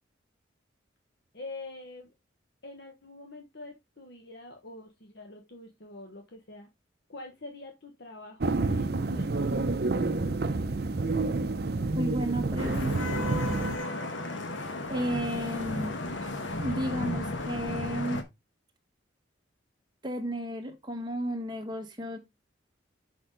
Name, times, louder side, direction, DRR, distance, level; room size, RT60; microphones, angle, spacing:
voice 1, 1.3-2.1 2.6-6.7 7.1-9.4, left 2 dB, 60° left, 1.2 m, -45 dB
sound 1, 8.4-13.8, right 3 dB, 55° right, 0.7 m, -28 dB
voice 2, 11.9-13.1 14.9-15.9 16.2-18.2 20.0-22.2, equal, 25° right, 1.4 m, -33 dB
Vehicle horn car horn honking / Traffic noise roadway noise, 12.6-18.2, left 2 dB, 75° left, 1.4 m, -34 dB
6.3 x 5.8 x 3.8 m
head